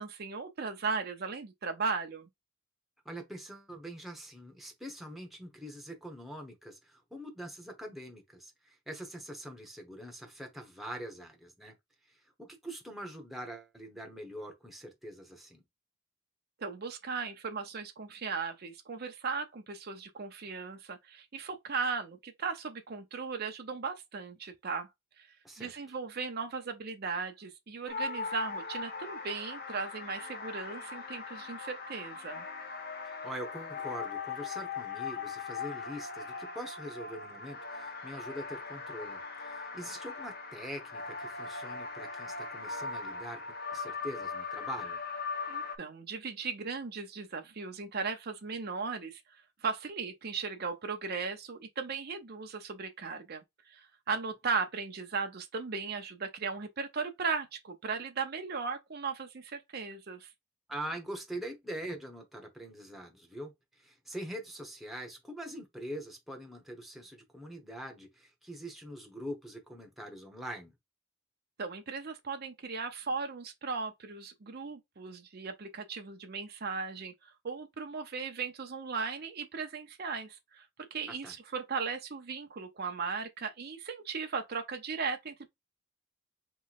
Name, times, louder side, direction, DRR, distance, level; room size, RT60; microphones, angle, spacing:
voice 1, 0.0-2.3 16.6-24.9 25.2-25.3 25.6-32.4 45.5-60.3 71.6-85.5, right 5 dB, 50° right, 0.7 m, -37 dB
voice 2, 3.0-11.7 12.1-15.6 25.4-25.7 33.2-45.0 60.7-70.7 81.1-81.4, equal, ahead, 0.9 m, -43 dB
sound 1, 27.9-45.8, left 4 dB, 50° left, 0.7 m, -40 dB
3.2 x 3.1 x 4.0 m
head